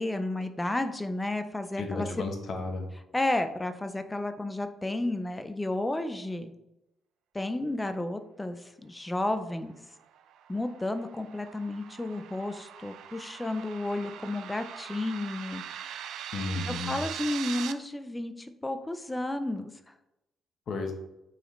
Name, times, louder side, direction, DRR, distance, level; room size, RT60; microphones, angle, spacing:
voice 1, 0.0-2.1 3.1-6.5 7.3-9.8 10.5-15.6 16.7-19.7, left 2 dB, 10° left, 8 dB, 0.4 m, -32 dB
voice 2, 1.8-2.9 16.3-17.0 20.7-20.9, left 3 dB, 45° left, 4 dB, 0.9 m, -33 dB
sound 1, 10.0-17.7, right 9 dB, 75° right, 0.4 m, -41 dB
8.9 x 4.0 x 3.1 m, 0.90 s
cardioid pair, 170°, 0 cm